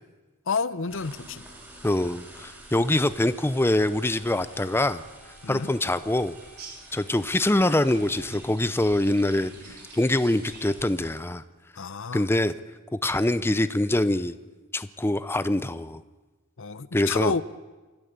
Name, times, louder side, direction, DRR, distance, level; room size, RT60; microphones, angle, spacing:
voice 1, 0.5-1.4 5.4-5.7 11.8-12.3 16.6-17.4, left 5 dB, 60° left, 16 dB, 0.7 m, -30 dB
sound 1, 0.7-9.8, equal, 75° right, 4.8 m, -53 dB
sound 2, 0.9-11.1, right 1 dB, 10° right, 5.1 m, -49 dB
voice 2, 1.8-5.0 5.5-6.4 6.9-11.4 12.1-12.5 13.0-14.4 14.7-16.0 16.9-17.3, left 1 dB, 10° left, 13 dB, 0.6 m, -24 dB
sound 3, 6.3-10.8, right 4 dB, 50° right, 6.2 m, -49 dB
28.0 x 12.5 x 8.2 m, 1.2 s
head